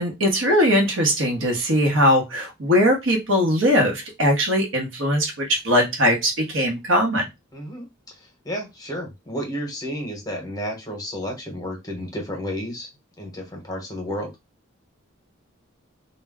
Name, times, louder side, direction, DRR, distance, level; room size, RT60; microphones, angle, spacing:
voice 1, 0.0-7.2, equal, 70° right, 2 dB, 0.9 m, -20 dB
voice 2, 7.5-12.9 13.2-14.3, equal, 20° left, 1 dB, 0.8 m, -32 dB
2.2 x 2.1 x 3.5 m, 0.22 s
head